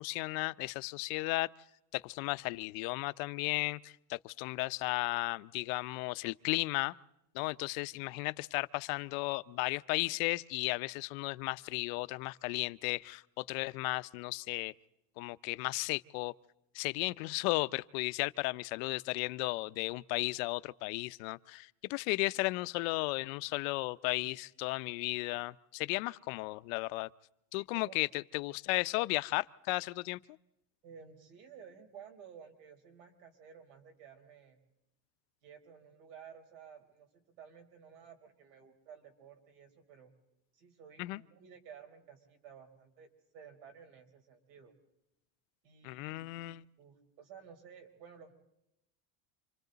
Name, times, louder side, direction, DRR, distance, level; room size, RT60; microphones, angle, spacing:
voice 1, 0.0-1.5 1.9-6.9 7.3-14.7 15.2-16.3 16.7-27.1 27.5-30.2 41.0-41.2 45.8-46.6, left 23 dB, 75° left, 0.7 m, -35 dB
voice 2, 27.5-28.0 30.8-34.6 35.4-40.1 40.5-44.7 45.6-46.3 46.8-48.3, right 7 dB, 85° right, 4.5 m, -54 dB
29.0 x 25.5 x 4.0 m
cardioid pair, 165°, 41 cm